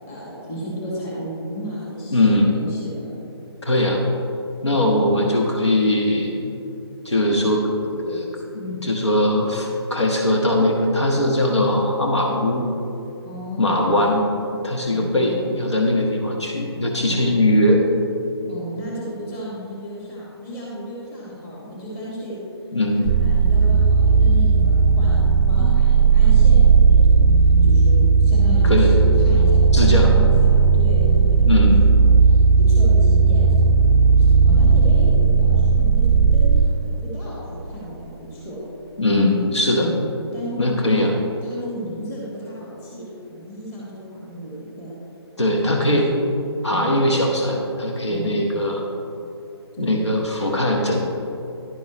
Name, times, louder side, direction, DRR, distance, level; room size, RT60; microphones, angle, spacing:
voice 1, 0.1-3.1 13.3-13.9 14.9-15.5 17.0-17.6 18.5-22.4 23.2-27.3 27.6-33.7 34.2-38.6 39.8-41.0 41.4-44.9 45.4-46.0 46.7-47.0 48.1-48.4 49.7-50.0, equal, 15° left, -6 dB, 1.9 m, -33 dB
voice 2, 2.1-2.5 3.6-4.0 4.6-6.5 7.0-12.7 13.6-14.2 14.6-17.8 22.7-23.1 28.6-28.9 29.7-30.1 31.5-31.8 39.0-39.9 40.6-41.1 45.4-46.1 46.6-48.8 49.8-51.0, left 1 dB, 85° left, 0 dB, 1.4 m, -20 dB
sound 1, 23.0-36.7, right 5 dB, 20° right, 0.4 m, -15 dB
11.5 x 10.5 x 3.1 m, 2.9 s
figure-of-eight pair, 145°, 14 cm